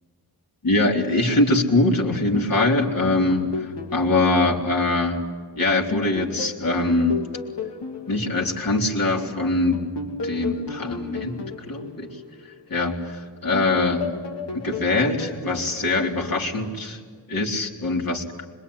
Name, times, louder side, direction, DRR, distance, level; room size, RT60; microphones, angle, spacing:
voice 1, 0.6-5.2 5.6-7.2 8.1-9.8 10.2-12.1 12.7-14.1 14.5-17.0 17.3-18.2, left 2 dB, 55° left, -1 dB, 3.9 m, -23 dB
sound 1, 2.1-5.4 5.9-9.2 9.7-13.0 13.5-16.8, left 4 dB, 80° left, 2.6 m, -34 dB
26.5 x 22.0 x 9.7 m, 1.5 s
wide cardioid pair, 115°, 41 cm